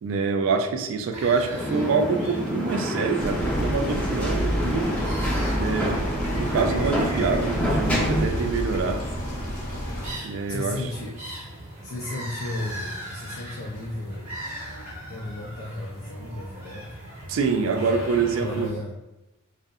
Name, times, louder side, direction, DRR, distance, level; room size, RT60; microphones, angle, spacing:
voice 1, 0.0-4.9 5.5-6.0 6.4-9.1 10.2-10.8 17.3-18.7, right 5 dB, 65° right, 5 dB, 0.3 m, -25 dB
sound 1, 1.1-18.7, right 1 dB, 35° right, 0.6 m, -39 dB
sound 2, 1.5-8.3, equal, 5° left, 0.4 m, -28 dB
sound 3, 3.2-10.1, equal, 85° left, 0.7 m, -29 dB
voice 2, 10.5-11.2 11.8-14.3 15.1-16.9 17.7-18.0 18.3-19.0, left 2 dB, 70° left, -3 dB, 0.4 m, -34 dB
2.6 x 2.0 x 2.4 m, 0.98 s
head